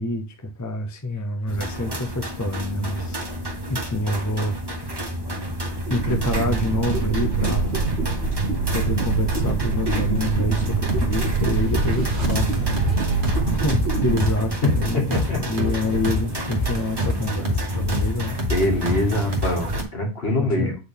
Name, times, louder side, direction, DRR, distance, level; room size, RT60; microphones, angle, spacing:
voice 1, 0.0-3.3 3.7-4.6 5.1-5.2 5.9-7.9 8.7-18.5 20.4-20.8, left 2 dB, 20° left, 0.5 m, -27 dB
sound 1, 1.5-19.8, equal, 25° right, 1.0 m, -31 dB
sound 2, 5.4-14.9, right 4 dB, 80° right, 1.2 m, -24 dB
sound 3, 10.6-19.8, equal, 55° right, 1.6 m, -27 dB
voice 2, 14.6-15.4 18.5-20.7, left 2 dB, 70° left, 2.0 m, -23 dB
8.3 x 4.0 x 3.4 m
omnidirectional pair, 1.0 m